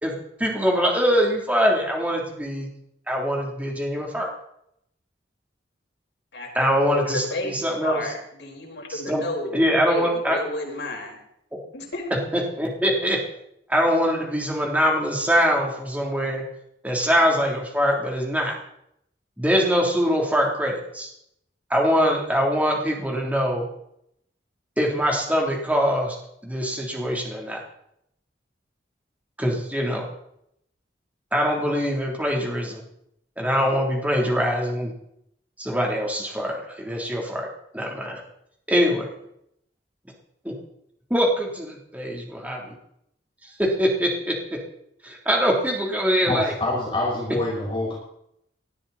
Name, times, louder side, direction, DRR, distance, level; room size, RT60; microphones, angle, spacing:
voice 1, 0.0-2.7 3.1-4.3 6.5-8.1 8.9-9.2 9.5-10.4 12.3-13.2 13.7-16.4 16.8-18.5 19.4-21.1 21.7-23.7 24.8-26.2 26.4-27.6 29.4-30.1 31.3-32.8 33.4-34.9 35.6-37.5 37.7-38.2 38.7-39.1 40.4-40.5 41.1-42.8 43.6-44.6 45.0-46.5, equal, 10° right, -1 dB, 3.5 m, -23 dB
voice 2, 6.8-9.5 9.8-11.2 11.7-12.1, left 1 dB, 90° left, 0 dB, 4.8 m, -31 dB
voice 3, 46.3-47.9, left 2 dB, 30° left, -4 dB, 5.4 m, -26 dB
19.5 x 13.0 x 4.3 m, 0.74 s
head